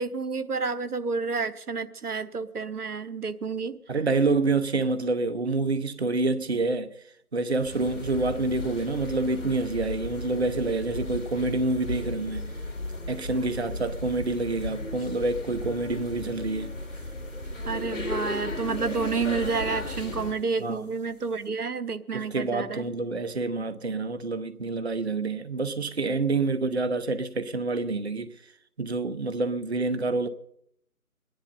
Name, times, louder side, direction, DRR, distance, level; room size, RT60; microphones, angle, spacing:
voice 1, 0.0-3.8 17.7-22.9, right 4 dB, 90° right, 1.0 m, -30 dB
voice 2, 3.9-6.9 7.3-12.5 13.1-16.8 20.6-20.9 22.1-28.3 28.8-30.3, right 3 dB, 45° right, 0.8 m, -27 dB
sound 1, 7.5-20.5, left 1 dB, 55° left, 2.8 m, -35 dB
23.5 x 10.5 x 5.4 m
figure-of-eight pair, 165°, 44 cm